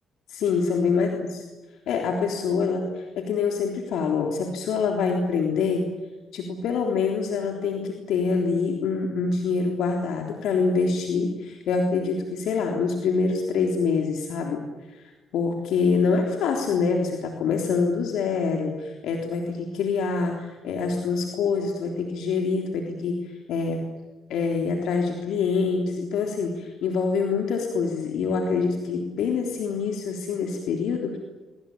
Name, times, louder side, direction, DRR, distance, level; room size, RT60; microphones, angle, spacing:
voice 1, 0.3-1.4 1.9-5.9 6.3-14.6 14.9-23.9 24.3-31.2, left 5 dB, 80° left, 2 dB, 3.6 m, -25 dB
24.5 x 24.0 x 9.1 m, 1.2 s
cardioid pair, 90°, 0 cm